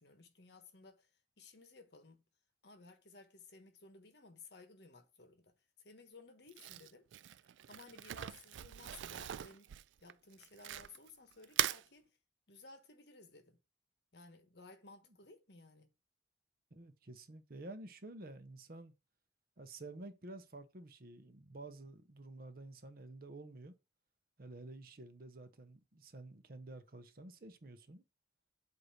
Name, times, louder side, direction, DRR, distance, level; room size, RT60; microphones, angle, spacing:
voice 1, 0.0-2.2 2.6-9.7 10.0-12.1 12.5-13.6 14.1-15.9, left 3 dB, 60° left, 1.2 m, -58 dB
Crumpling crinkling, 6.5-11.1 11.4-11.8, right 12 dB, 80° right, 0.3 m, -40 dB
voice 2, 16.7-18.9 19.6-23.7 24.4-28.0, right 2 dB, 50° right, 0.7 m, -51 dB
8.0 x 2.7 x 5.8 m
head